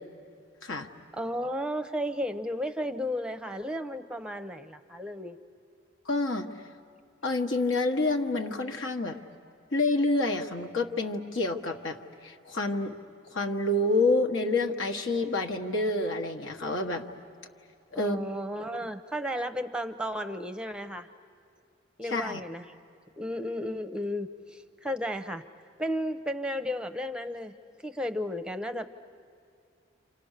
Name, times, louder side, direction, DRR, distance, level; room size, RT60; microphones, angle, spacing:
voice 1, 1.1-5.4 17.9-21.1 22.0-22.6 23.2-25.4 25.8-27.5 27.8-28.9, equal, 5° right, 9 dB, 0.7 m, -33 dB
voice 2, 6.0-6.5 7.2-9.2 9.7-12.0 12.2-12.9 13.3-17.1 17.9-18.2 22.1-22.4, left 2 dB, 80° left, 4 dB, 1.5 m, -28 dB
29.5 x 27.0 x 6.6 m, 2.5 s
head